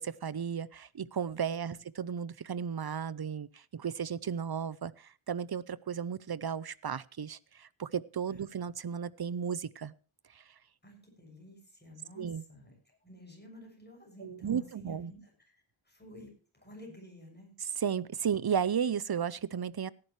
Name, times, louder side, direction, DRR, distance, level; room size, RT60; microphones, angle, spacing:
voice 1, 0.0-9.9 10.3-10.4 12.2-12.4 14.2-15.1 17.6-19.9, right 7 dB, 50° right, 20 dB, 0.7 m, -34 dB
voice 2, 10.8-17.5, left 1 dB, 20° left, 1 dB, 6.8 m, -52 dB
18.0 x 11.0 x 3.2 m, 0.35 s
wide cardioid pair, 55°, 49 cm